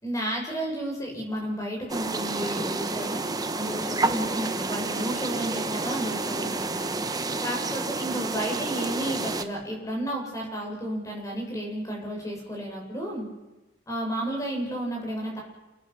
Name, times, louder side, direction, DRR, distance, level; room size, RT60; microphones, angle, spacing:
voice 1, 0.0-3.2 3.5-13.3 13.9-15.4, right 1 dB, 15° left, -1 dB, 7.0 m, -32 dB
sound 1, 1.9-9.4, right 3 dB, 20° right, 1.1 m, -30 dB
29.0 x 18.5 x 6.3 m, 1.1 s
head